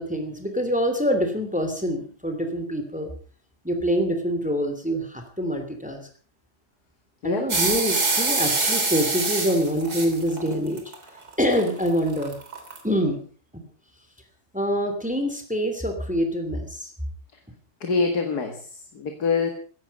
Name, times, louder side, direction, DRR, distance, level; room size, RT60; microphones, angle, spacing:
voice 1, 0.0-3.1 3.6-6.0 7.2-10.8 11.4-12.4 12.8-13.2 13.5-13.6 14.5-16.9, equal, 5° right, 6 dB, 2.8 m, -25 dB
sound 1, 7.5-12.8, right 3 dB, 75° right, 3.8 m, -25 dB
voice 2, 17.8-19.5, left 4 dB, 80° left, 5 dB, 2.4 m, -25 dB
16.5 x 15.0 x 5.4 m, 0.43 s
omnidirectional pair, 1.6 m